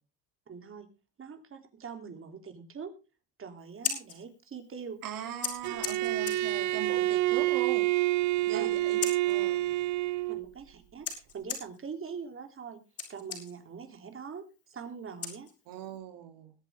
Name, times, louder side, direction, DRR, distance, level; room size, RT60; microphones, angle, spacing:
voice 1, 0.5-0.9 1.2-2.9 3.4-5.0 8.5-8.7 10.3-12.8 13.1-15.5, right 6 dB, 40° right, 6 dB, 3.3 m, -43 dB
Scissors, 3.6-16.0, left 6 dB, 45° left, 5.6 m, -42 dB
voice 2, 5.0-7.9 8.5-9.0 9.3-9.6 15.7-16.5, right 10 dB, 75° right, 5 dB, 3.1 m, -40 dB
Bowed string instrument, 5.6-10.5, right 16 dB, 55° right, 0.7 m, -28 dB
21.5 x 8.4 x 3.6 m, 0.32 s
cardioid pair, 100°, 34 cm